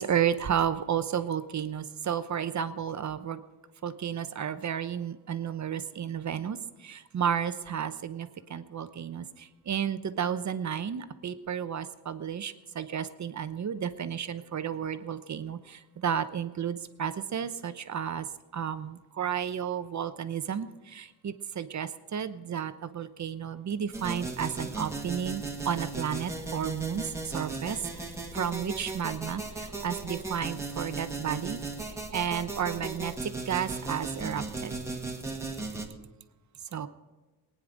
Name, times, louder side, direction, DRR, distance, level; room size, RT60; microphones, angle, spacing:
voice 1, 0.0-3.4 3.8-18.3 18.5-28.0 28.3-31.6 32.1-34.7 35.8-35.9 36.7-36.9, right 8 dB, 45° right, 11 dB, 0.9 m, -32 dB
sound 1, 23.9-35.9, right 3 dB, 5° right, 1.9 m, -36 dB
20.0 x 9.7 x 5.1 m, 1.2 s
cardioid pair, 105°, 39 cm